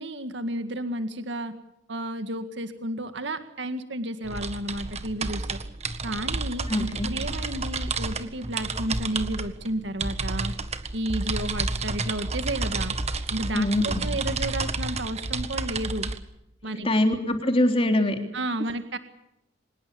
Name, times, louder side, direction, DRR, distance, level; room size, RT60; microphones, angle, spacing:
voice 1, 0.0-1.5 1.9-5.6 6.0-10.5 10.9-13.0 13.3-16.1 16.6-16.9 18.3-19.0, right 1 dB, 65° right, 8 dB, 1.9 m, -32 dB
sound 1, 4.2-16.2, right 3 dB, 35° right, 1.6 m, -30 dB
voice 2, 6.7-7.1 13.5-14.0 16.8-18.2, left 1 dB, 30° left, 4 dB, 3.7 m, -23 dB
25.5 x 20.5 x 7.1 m, 0.82 s
head